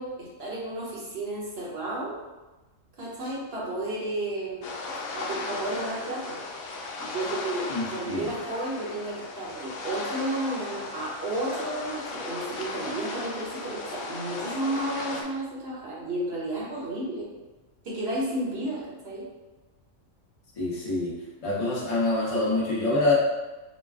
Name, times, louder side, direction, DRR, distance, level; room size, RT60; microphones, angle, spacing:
voice 1, 0.0-2.2 3.0-4.7 5.1-6.4 7.0-17.3 17.8-19.3, right 1 dB, 50° right, -6 dB, 1.3 m, -32 dB
sound 1, 4.6-15.2, left 3 dB, 80° left, 1.0 m, -36 dB
voice 2, 7.7-8.2 20.6-21.1 21.4-23.1, left 2 dB, 30° left, -7 dB, 0.9 m, -26 dB
4.1 x 2.2 x 3.5 m, 1.1 s
omnidirectional pair, 1.4 m